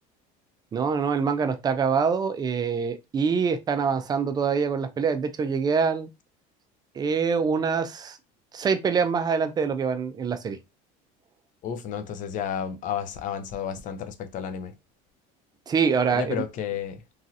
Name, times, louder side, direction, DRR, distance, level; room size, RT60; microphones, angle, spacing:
voice 1, 0.7-6.1 7.0-8.2 8.5-10.6 15.7-16.4, right 6 dB, 20° right, 0.4 m, -25 dB
voice 2, 11.6-14.7 16.1-17.0, left 8 dB, 45° left, 0.5 m, -32 dB
3.1 x 2.5 x 2.7 m
cardioid pair, 135°, 19 cm